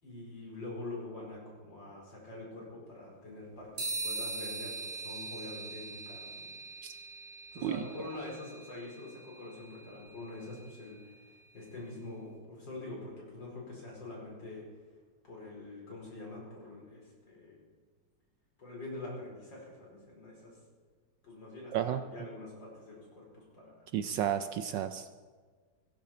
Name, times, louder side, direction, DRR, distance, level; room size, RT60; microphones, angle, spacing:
voice 1, 0.0-6.5 7.5-11.1 11.5-14.7 15.3-17.6 18.6-20.6 21.2-23.8, left 2 dB, 60° left, -3 dB, 5.3 m, -45 dB
sound 1, 3.8-11.4, right 2 dB, 40° right, 5.7 m, -42 dB
voice 2, 23.9-25.1, right 10 dB, 70° right, 10 dB, 1.2 m, -32 dB
17.0 x 16.0 x 4.4 m, 1.5 s
omnidirectional pair, 2.3 m